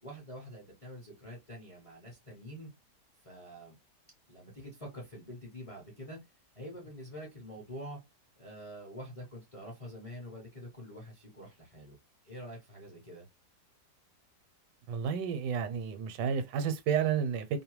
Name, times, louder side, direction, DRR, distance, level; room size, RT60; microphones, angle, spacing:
voice 1, 0.0-2.7 3.2-3.8 4.3-6.2 6.5-8.0 8.4-12.0 12.2-13.3, equal, 30° left, 0.7 m, -46 dB
voice 2, 14.9-17.6, right 7 dB, 80° right, 1.2 m, -31 dB
2.7 x 2.1 x 2.9 m
omnidirectional pair, 1.8 m